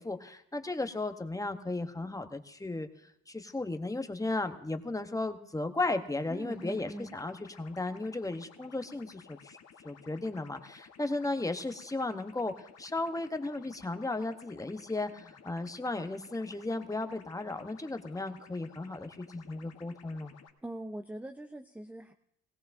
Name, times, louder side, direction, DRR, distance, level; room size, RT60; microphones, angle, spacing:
voice 1, 0.0-2.9 3.3-9.6 9.8-20.4, left 2 dB, 10° left, 7 dB, 0.9 m, -35 dB
voice 2, 6.3-7.2 20.6-22.1, right 1 dB, 5° right, 6 dB, 0.5 m, -41 dB
sound 1, 6.5-20.5, left 6 dB, 55° left, 1.1 m, -56 dB
18.0 x 17.0 x 2.6 m, 0.77 s
cardioid pair, 90°, 30 cm